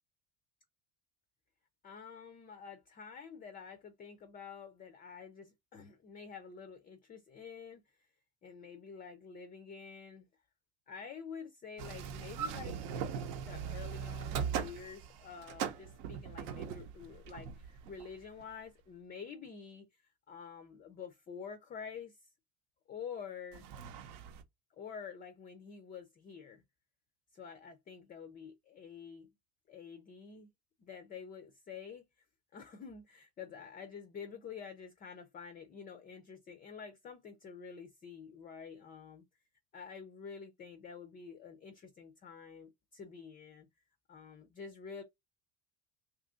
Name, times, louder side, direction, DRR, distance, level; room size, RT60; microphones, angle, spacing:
voice 1, 1.8-8.1 8.4-10.3 10.9-12.8 13.4-22.2 22.9-23.7 24.8-26.6 27.3-29.3 29.7-30.5 30.8-32.1 32.5-39.2 39.7-43.7 44.1-45.0, left 6 dB, 20° left, 0.3 m, -48 dB
sound 1, 11.8-18.5 23.5-24.4, right 7 dB, 75° right, 0.8 m, -40 dB
2.7 x 2.4 x 3.6 m
supercardioid pair, 110°, 43 cm